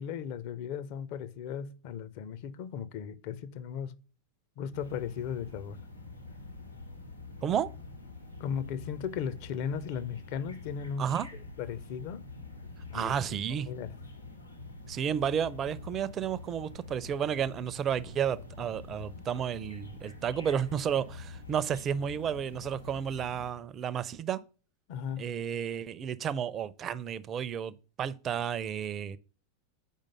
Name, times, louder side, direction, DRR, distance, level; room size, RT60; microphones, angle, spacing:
voice 1, 0.0-3.9 4.6-5.8 8.4-11.2 11.6-12.2 12.9-13.1 13.7-14.0 24.9-25.3, left 7 dB, 45° left, 0.6 m, -36 dB
sound 1, 4.7-23.5, left 3 dB, 85° left, 1.6 m, -46 dB
voice 2, 7.4-7.7 11.0-11.3 12.9-13.7 14.9-24.4 25.2-29.2, right 8 dB, 25° right, 0.5 m, -32 dB
7.3 x 5.1 x 5.4 m
figure-of-eight pair, 90°, 0 cm